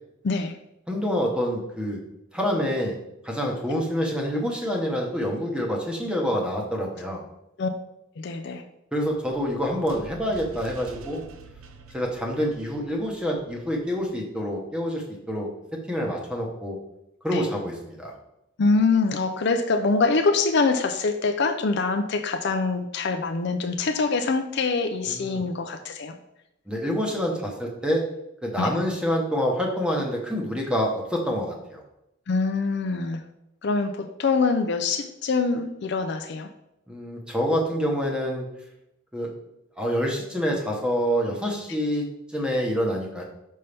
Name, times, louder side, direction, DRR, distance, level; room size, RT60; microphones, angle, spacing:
voice 1, 0.2-0.6 7.6-7.7 8.2-8.6 17.3-17.5 18.6-26.1 28.6-28.7 32.3-33.2 33.6-36.5, left 4 dB, 55° left, 7 dB, 0.4 m, -24 dB
voice 2, 0.9-2.0 2.3-3.0 3.2-7.2 8.9-11.2 11.9-15.5 15.9-16.8 17.2-18.1 25.1-25.5 26.7-28.0 28.4-31.8 36.9-38.5 39.1-39.3 39.8-43.2, equal, 5° right, -1 dB, 1.0 m, -27 dB
sound 1, 9.1-14.1, right 3 dB, 75° right, 0.6 m, -47 dB
5.5 x 5.4 x 3.4 m, 0.85 s
head